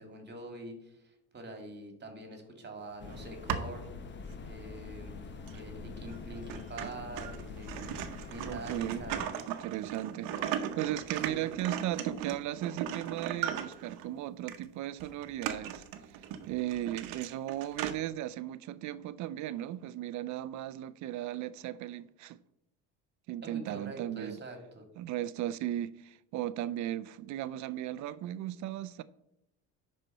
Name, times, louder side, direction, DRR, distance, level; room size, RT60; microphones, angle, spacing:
voice 1, 0.0-3.9 4.4-5.2 5.5-8.0 8.3-9.4 11.3-11.5 23.4-24.8, right 2 dB, 30° right, 2.3 m, -45 dB
sound 1, 3.0-9.3, left 4 dB, 30° left, 1.0 m, -45 dB
sound 2, 3.1-3.9 4.5-4.6 5.5-5.6 6.1-6.2 6.5-14.1 14.5-14.6 15.0-17.9, right 9 dB, 75° right, 0.9 m, -38 dB
voice 2, 8.4-9.0 9.5-22.4 23.3-24.4 25.0-29.0, right 13 dB, 55° right, 0.5 m, -36 dB
9.8 x 4.3 x 5.4 m
supercardioid pair, 85°, 34 cm